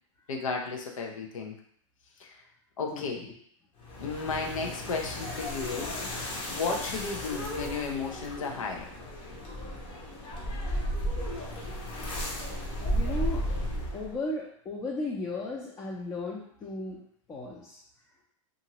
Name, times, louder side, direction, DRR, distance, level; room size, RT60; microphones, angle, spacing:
voice 1, 0.3-1.6 2.2-2.4 2.8-3.2 4.0-6.0 6.3-8.9, left 4 dB, 85° left, 2 dB, 0.6 m, -34 dB
voice 2, 2.9-3.3 12.9-13.4 13.9-17.0 17.3-17.8, left 2 dB, 20° left, -3 dB, 0.5 m, -35 dB
sound 1, 3.8-14.2, equal, 35° left, 0.8 m, -34 dB
2.8 x 2.5 x 2.9 m, 0.64 s
hypercardioid pair, 125°, 17 cm